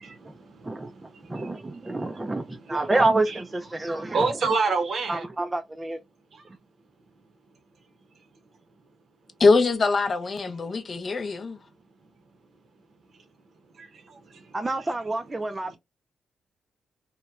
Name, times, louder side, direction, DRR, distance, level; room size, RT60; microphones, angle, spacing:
voice 1, 0.0-3.4 3.7-5.3 6.3-6.5 8.1-8.2 12.0-12.1 13.1-13.3 13.7-14.9 15.6-15.8, right 4 dB, 60° right, 0.7 m, -32 dB
voice 2, 1.3-4.3 5.1-6.0 14.5-15.8, right 2 dB, 20° right, 0.3 m, -27 dB
voice 3, 9.4-11.6, left 4 dB, 45° left, 0.4 m, -22 dB
2.8 x 2.1 x 2.3 m
cardioid pair, 80°, 0 cm